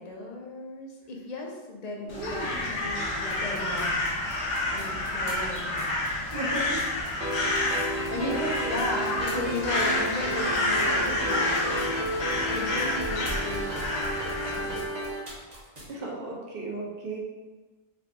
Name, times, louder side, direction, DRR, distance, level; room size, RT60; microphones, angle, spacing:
voice 1, 0.0-4.1 4.7-5.9 7.8-12.0 12.5-13.7 14.4-14.8, left 2 dB, 50° left, 0 dB, 0.5 m, -36 dB
voice 2, 2.0-2.8 6.3-6.9 7.6-8.5 15.8-17.2, right 2 dB, 60° right, -3 dB, 1.0 m, -36 dB
Crow, 2.1-14.8, left 2 dB, 70° left, 1.0 m, -29 dB
sound 1, 3.3-15.9, right 1 dB, 40° right, 1.1 m, -43 dB
sound 2, 7.2-15.2, right 1 dB, 80° right, 1.4 m, -32 dB
3.4 x 2.3 x 3.8 m, 1.2 s
omnidirectional pair, 1.2 m